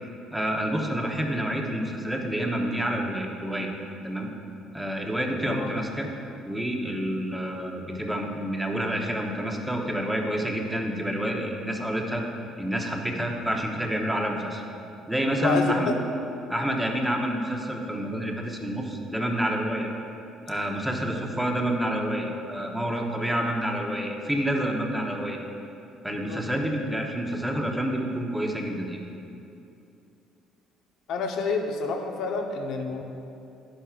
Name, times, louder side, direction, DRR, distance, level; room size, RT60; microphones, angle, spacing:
voice 1, 0.3-3.7 4.0-4.3 4.7-6.1 6.5-12.2 12.6-14.6 15.1-15.9 16.5-19.9 20.5-25.4 26.0-29.0, equal, 5° right, 0 dB, 1.0 m, -28 dB
voice 2, 15.4-15.9 26.3-26.4 31.1-33.0, left 4 dB, 70° left, 3 dB, 0.9 m, -28 dB
11.0 x 10.5 x 2.5 m, 2.7 s
cardioid pair, 120°, 0 cm